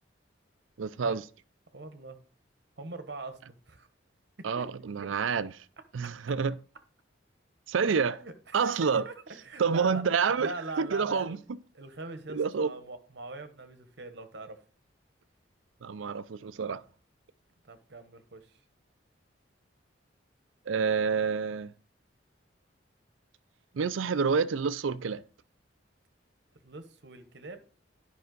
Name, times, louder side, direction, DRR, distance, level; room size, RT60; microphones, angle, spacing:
voice 1, 0.8-1.2 4.4-5.6 5.9-6.5 7.7-8.2 8.5-9.0 9.6-10.5 10.8-11.4 12.3-12.7 15.8-16.8 20.7-21.7 23.7-25.2, right 5 dB, 85° right, 0.5 m, -28 dB
voice 2, 1.7-2.2 2.8-3.4 3.7-3.9 4.4-4.7 7.8-10.1 10.4-11.4 11.7-14.6 17.6-18.6 26.6-27.6, right 2 dB, 60° right, 1.1 m, -42 dB
11.0 x 5.5 x 3.9 m
head